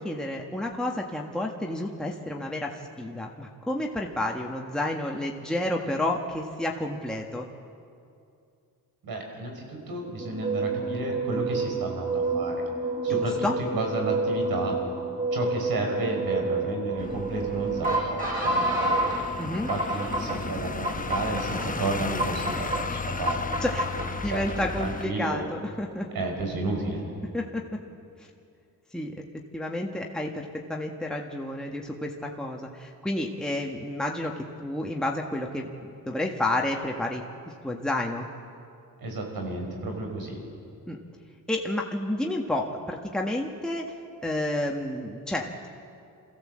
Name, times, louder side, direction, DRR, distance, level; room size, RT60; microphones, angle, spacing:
voice 1, 0.0-7.5 13.1-13.5 19.4-19.7 23.6-23.9 24.2-26.1 27.3-27.6 28.2-28.3 28.9-29.2 29.5-34.3 34.6-37.2 37.6-38.3 40.9-41.0 41.5-45.7, left 1 dB, ahead, -1 dB, 1.6 m, -30 dB
voice 2, 9.0-12.7 13.0-14.7 15.3-19.2 19.7-23.9 24.2-25.4 26.1-27.0 39.0-40.4, right 2 dB, 65° right, 2 dB, 4.9 m, -32 dB
sound 1, 10.2-19.2 19.7-20.4 20.8-21.6 22.2-22.8 23.3-24.1, right 2 dB, 20° right, 6.9 m, -28 dB
sound 2, 17.0-25.1, left 4 dB, 20° left, 0.9 m, -35 dB
24.5 x 15.5 x 7.7 m, 2.5 s
cardioid pair, 75°, 38 cm